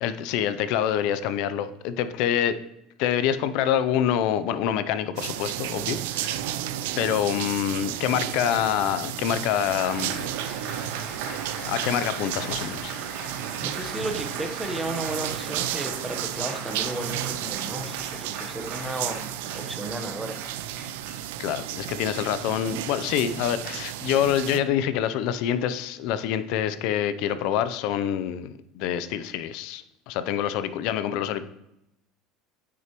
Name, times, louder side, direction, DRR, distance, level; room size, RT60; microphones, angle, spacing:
voice 1, 0.0-2.6 3.0-6.4 6.9-10.3 11.6-12.9 21.4-31.4, left 10 dB, 65° left, 13 dB, 0.5 m, -26 dB
sound 1, 5.2-24.6, right 12 dB, 85° right, 0.4 m, -33 dB
Applause, 9.3-22.0, right 4 dB, 70° right, 2.3 m, -39 dB
voice 2, 13.6-19.2 19.5-20.4, right 1 dB, 5° right, 4 dB, 1.0 m, -34 dB
9.3 x 6.1 x 3.0 m, 0.85 s
supercardioid pair, 135°, 0 cm